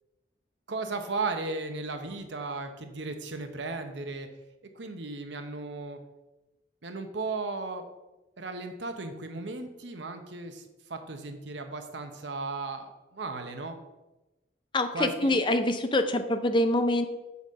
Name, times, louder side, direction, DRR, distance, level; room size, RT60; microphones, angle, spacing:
voice 1, 0.7-4.3 4.7-6.0 6.8-7.8 8.4-10.6 10.9-13.8 14.9-15.3, right 3 dB, 80° right, 6 dB, 0.9 m, -35 dB
voice 2, 14.7-17.1, left 1 dB, 25° left, 8 dB, 0.5 m, -25 dB
6.9 x 4.1 x 6.2 m, 1.0 s
head